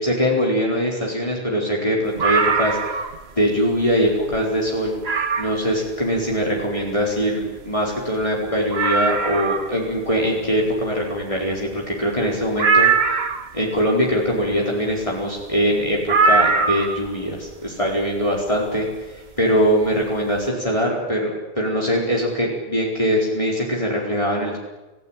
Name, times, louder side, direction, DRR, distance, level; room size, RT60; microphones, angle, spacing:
voice 1, 0.0-3.0 3.4-5.0 5.4-13.2 13.5-18.9 19.1-21.3 21.6-24.6, equal, 30° left, -3 dB, 4.6 m, -22 dB
sound 1, 2.2-3.2 3.7-3.8 4.3-4.4 5.0-5.6 7.4-7.5 7.7-7.8 8.2-8.3 8.7-9.8 12.6-13.5 16.1-17.1 18.4-18.5, right 4 dB, 80° right, 1.7 m, -20 dB
29.5 x 16.5 x 9.1 m, 1.2 s
omnidirectional pair, 1.1 m